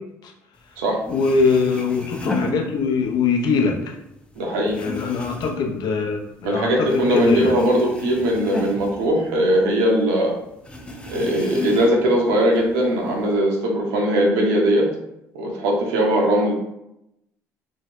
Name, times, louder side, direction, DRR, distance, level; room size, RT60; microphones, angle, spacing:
sound 1, 0.8-0.9 1.0-3.3 3.6-6.5 6.8-9.8 10.1-10.2 10.7-12.1 12.5-13.3, left 2 dB, 15° left, 0.4 m, -32 dB
voice 1, 1.1-4.0 4.7-6.9 7.1-7.6, left 4 dB, 60° left, 1 dB, 0.5 m, -22 dB
voice 2, 4.4-4.8 6.4-10.3 11.1-14.9 15.3-16.5, equal, 80° right, -1 dB, 0.7 m, -20 dB
2.7 x 2.1 x 2.9 m, 0.85 s
hypercardioid pair, 65°, 8 cm